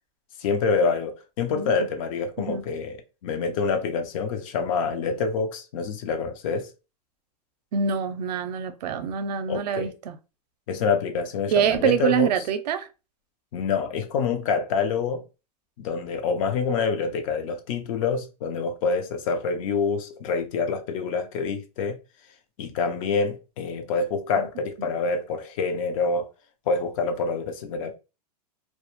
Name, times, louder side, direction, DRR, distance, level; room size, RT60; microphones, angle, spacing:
voice 1, 0.4-3.0 3.2-6.7 9.5-9.9 10.7-12.3 13.5-15.2 15.8-22.0 22.6-26.3 26.7-28.0, left 5 dB, 55° left, 0.5 m, -26 dB
voice 2, 7.7-10.2 11.5-12.9 24.4-24.5 24.9-25.0, right 8 dB, 85° right, 0.5 m, -25 dB
2.2 x 2.0 x 2.8 m
supercardioid pair, 150°, 20 cm